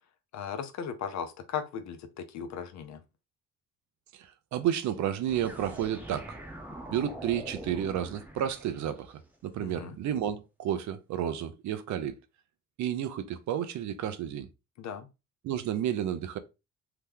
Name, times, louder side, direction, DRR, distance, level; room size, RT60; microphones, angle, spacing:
voice 1, 0.3-3.0 9.6-10.0 14.8-15.1, left 7 dB, 65° left, 0.7 m, -37 dB
voice 2, 4.1-6.4 6.9-12.2 12.8-14.5 15.4-16.4, right 10 dB, 70° right, 0.5 m, -31 dB
sound 1, 5.3-9.2, right 1 dB, 5° right, 0.8 m, -44 dB
2.9 x 2.2 x 3.4 m
cardioid pair, 90°, 30 cm